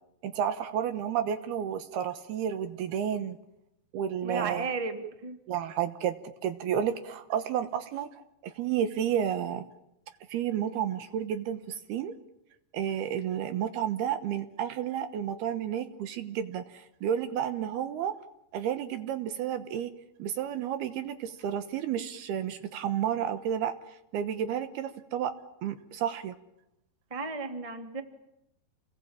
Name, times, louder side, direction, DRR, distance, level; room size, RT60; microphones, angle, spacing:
voice 1, 0.2-3.4 3.9-4.7 5.5-8.1 8.4-9.6 10.3-12.2 12.7-18.1 18.5-19.9 20.2-25.3 25.6-26.4, right 9 dB, 70° right, 11 dB, 2.9 m, -31 dB
voice 2, 4.2-5.4 27.1-28.0, right 4 dB, 10° right, 6 dB, 1.6 m, -34 dB
29.0 x 21.0 x 8.9 m, 0.84 s
omnidirectional pair, 5.1 m